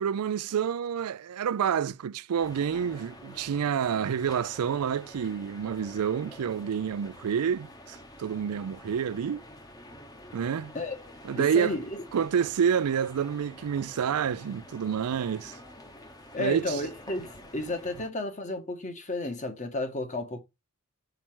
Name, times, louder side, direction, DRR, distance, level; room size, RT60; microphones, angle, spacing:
voice 1, 0.0-9.4 10.3-10.7 11.2-11.8 12.1-15.6 16.4-16.8, right 7 dB, 90° right, 0.4 m, -28 dB
sound 1, 2.4-18.1, left 1 dB, 20° left, 1.1 m, -48 dB
voice 2, 11.3-12.0 16.3-20.4, left 2 dB, 35° left, 1.5 m, -32 dB
5.8 x 4.5 x 6.0 m
head